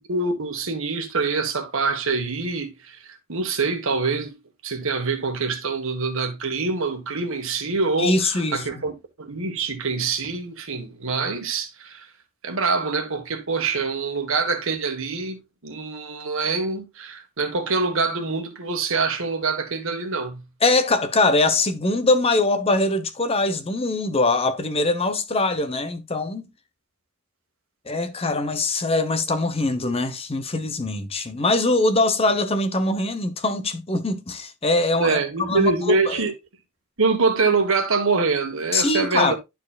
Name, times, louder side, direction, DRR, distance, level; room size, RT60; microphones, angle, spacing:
voice 1, 0.0-4.4 4.6-8.9 9.2-12.1 12.4-20.4 35.0-36.3 37.0-39.4, right 4 dB, 60° right, 1.5 m, -25 dB
voice 2, 8.0-8.8 20.6-26.5 27.9-36.2 38.7-39.4, left 2 dB, 25° left, 0.8 m, -22 dB
12.0 x 4.5 x 2.3 m
head